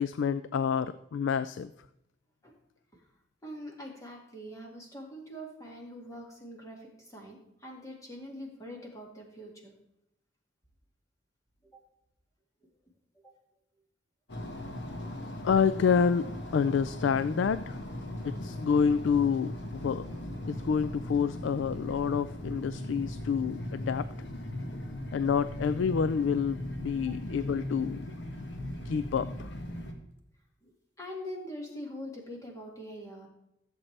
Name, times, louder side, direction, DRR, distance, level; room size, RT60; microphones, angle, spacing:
voice 1, 0.0-1.7 15.4-17.8 18.2-20.0 20.5-24.1 25.1-28.1 28.9-29.5, left 6 dB, 85° left, 14 dB, 0.4 m, -28 dB
voice 2, 3.4-9.7 11.7-11.8 13.2-13.3 14.5-14.7 30.6-33.3, equal, 15° left, 0 dB, 2.0 m, -43 dB
sound 1, 14.3-29.9, left 1 dB, 70° left, 1.5 m, -38 dB
14.5 x 7.6 x 3.3 m, 0.83 s
head